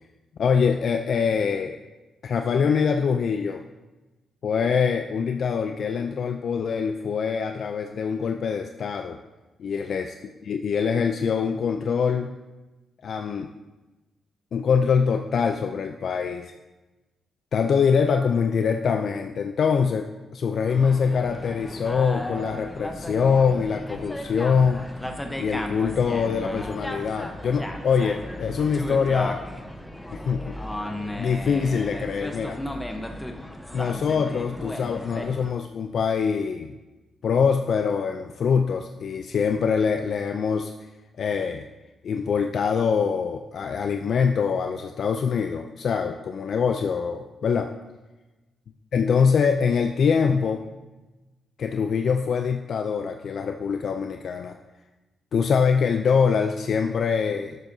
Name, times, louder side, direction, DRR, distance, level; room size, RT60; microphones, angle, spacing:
voice 1, 0.4-1.8 2.2-3.6 4.4-9.2 9.6-10.1 10.4-12.4 13.0-13.5 14.5-16.5 17.5-24.9 25.4-29.4 30.1-30.6 31.2-32.6 33.7-36.8 37.2-40.7 41.2-41.7 42.0-47.7 48.9-50.7 51.6-54.6 55.3-57.6, left 6 dB, 60° left, 5 dB, 0.4 m, -24 dB
sound 1, 20.7-35.5, left 1 dB, 10° left, 0.8 m, -35 dB
11.0 x 8.4 x 2.7 m, 1.1 s
cardioid pair, 95°, 0 cm